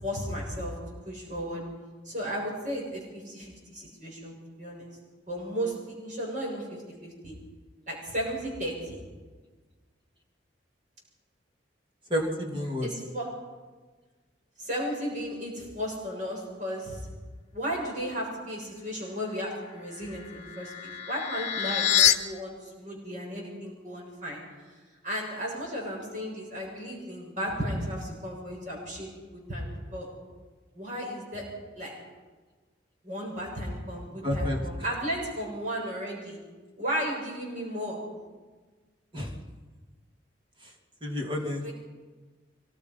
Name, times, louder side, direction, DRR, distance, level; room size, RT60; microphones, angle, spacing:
voice 1, 0.0-0.7 1.1-1.6 2.0-4.9 5.3-6.7 7.0-7.3 7.9-9.0 12.8-13.3 14.6-17.1 17.5-24.4 24.7-30.1 30.7-31.5 31.7-32.0 33.0-36.4 36.8-38.0 41.6-41.7, equal, 45° right, -2 dB, 7.0 m, -34 dB
voice 2, 12.1-12.9 34.2-35.1 39.1-39.4 40.6-40.7 41.0-41.7, left 1 dB, 25° right, 1 dB, 2.8 m, -31 dB
sound 1, 19.9-22.1, left 10 dB, 40° left, 1.2 m, -26 dB
24.5 x 19.5 x 5.5 m, 1.4 s
head